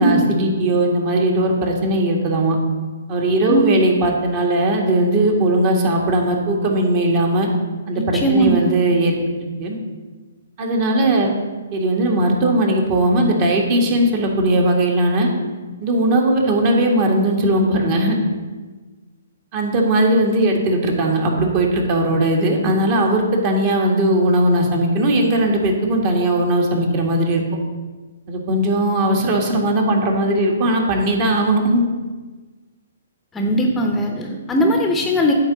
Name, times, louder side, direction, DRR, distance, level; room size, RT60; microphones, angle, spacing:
voice 1, 0.0-2.6 3.1-7.5 7.9-9.1 9.6-9.8 10.6-11.3 11.7-15.3 15.8-18.2 19.5-27.4 28.3-31.8, right 1 dB, 40° right, 1 dB, 1.8 m, -18 dB
voice 2, 7.9-8.7 33.3-35.3, right 1 dB, 10° left, 2 dB, 0.8 m, -19 dB
9.1 x 3.7 x 7.1 m, 1.3 s
hypercardioid pair, 135°, 0 cm